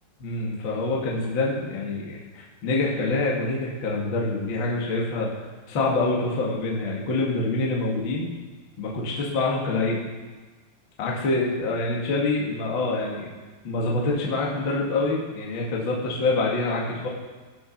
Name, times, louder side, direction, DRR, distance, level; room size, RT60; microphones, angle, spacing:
voice 1, 0.2-5.3 5.7-8.3 8.8-10.0 11.0-13.3 13.6-17.1, left 2 dB, 75° left, -3 dB, 1.1 m, -26 dB
17.0 x 6.2 x 5.9 m, 1.3 s
omnidirectional pair, 5.7 m